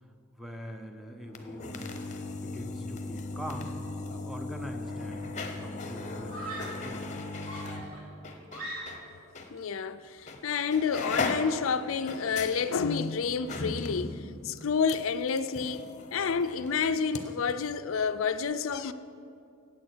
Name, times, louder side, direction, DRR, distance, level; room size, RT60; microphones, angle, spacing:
voice 1, 0.3-2.0 2.4-3.7 4.1-7.1, equal, ahead, 0.8 m, -43 dB
sound 1, 1.2-9.0 9.3-9.5 10.3-10.4 10.7-17.2 17.5-17.6, left 3 dB, 35° left, 0.9 m, -38 dB
Screaming, 6.3-6.9 7.5-9.2, right 1 dB, 85° right, 3.0 m, -41 dB
voice 2, 9.5-15.9 16.1-18.9, left 5 dB, 70° left, 0.5 m, -29 dB
15.5 x 8.5 x 4.5 m
head